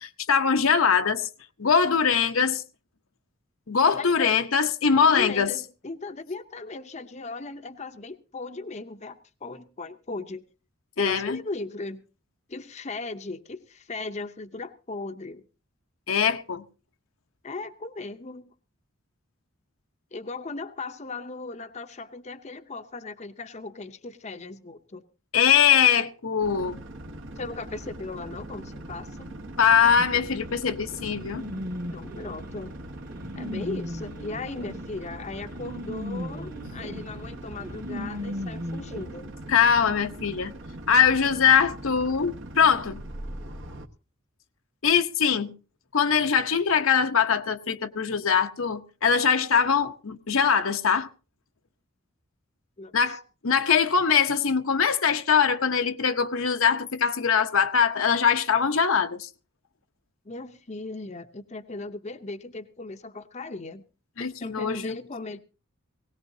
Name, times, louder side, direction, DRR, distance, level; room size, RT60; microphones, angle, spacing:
voice 1, 0.0-1.3 1.6-2.6 3.7-5.5 11.0-11.4 16.1-16.6 25.3-26.8 29.6-31.5 39.5-40.5 40.9-43.0 44.8-45.5 45.9-51.1 52.9-59.3 64.2-64.9, left 7 dB, 70° left, 0.8 m, -22 dB
voice 2, 3.9-4.3 4.9-10.4 11.0-12.0 12.5-15.4 17.4-18.5 20.1-25.0 27.4-29.3 31.9-32.7 33.4-39.3 52.8-53.2 60.2-63.8 64.2-65.4, left 3 dB, 35° left, 0.7 m, -37 dB
sound 1, 26.4-43.9, right 1 dB, 60° right, 1.2 m, -41 dB
sound 2, 30.0-39.1, equal, 45° right, 1.6 m, -37 dB
19.0 x 18.0 x 2.7 m
head